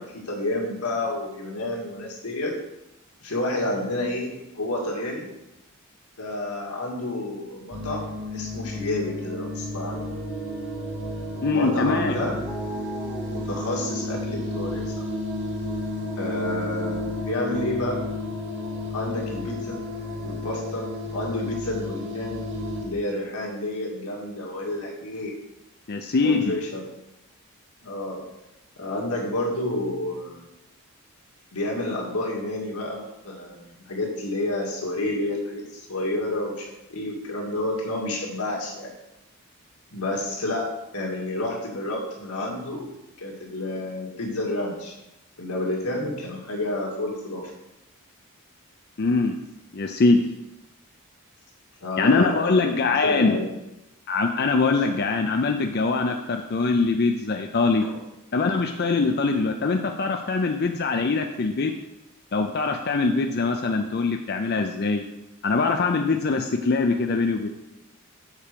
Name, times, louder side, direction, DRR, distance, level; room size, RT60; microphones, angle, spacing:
voice 1, 0.0-2.6 3.2-5.3 6.2-10.1 11.5-12.4 13.3-15.1 16.2-18.1 18.9-19.8 20.2-22.4 22.8-25.3 26.2-26.8 27.8-28.3 28.8-30.4 31.5-38.9 39.9-42.9 43.2-45.0 45.4-47.5 51.8-53.5 57.8-58.0, left 1 dB, 85° left, -2 dB, 2.2 m, -30 dB
sound 1, 7.7-22.8, left 2 dB, 55° right, 1.9 m, -32 dB
sound 2, 9.0-21.4, right 1 dB, 5° right, 0.9 m, -39 dB
voice 2, 11.4-12.2 25.9-26.5 49.0-49.4 49.7-50.2 52.0-53.4 54.1-57.8 58.3-61.7 62.3-65.0 65.4-67.5, left 3 dB, 45° left, 5 dB, 0.5 m, -23 dB
7.3 x 5.0 x 6.8 m, 0.94 s
head